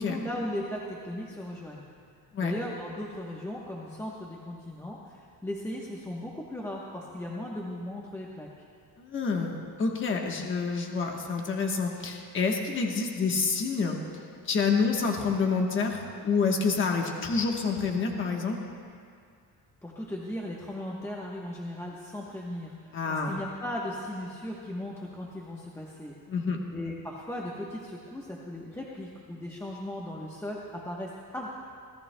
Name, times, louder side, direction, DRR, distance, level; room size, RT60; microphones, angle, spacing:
voice 1, 0.0-1.9 2.4-8.5 19.8-26.1 26.7-31.5, left 1 dB, 5° left, -4 dB, 1.0 m, -37 dB
voice 2, 9.0-14.0 14.4-18.6 22.9-23.4 26.3-26.6, left 4 dB, 30° left, 1 dB, 1.2 m, -28 dB
25.5 x 17.5 x 2.2 m, 2.2 s
cardioid pair, 170°, 38 cm